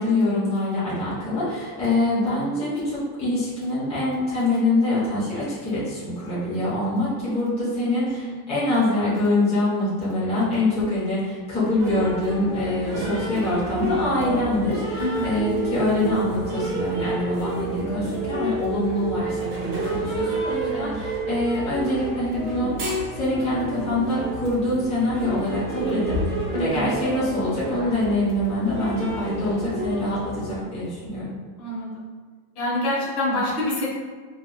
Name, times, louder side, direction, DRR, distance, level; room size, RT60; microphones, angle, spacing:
voice 1, 0.0-22.7 23.1-31.3, left 1 dB, 15° left, -11 dB, 0.9 m, -25 dB
sound 1, 11.8-30.6, right 2 dB, 30° right, 1.0 m, -29 dB
voice 2, 15.0-15.3 20.7-20.9 26.5-26.8 31.6-32.0 32.5-33.9, left 1 dB, 80° left, -6 dB, 1.5 m, -26 dB
3.0 x 3.0 x 2.3 m, 1.5 s
supercardioid pair, 160°, 44 cm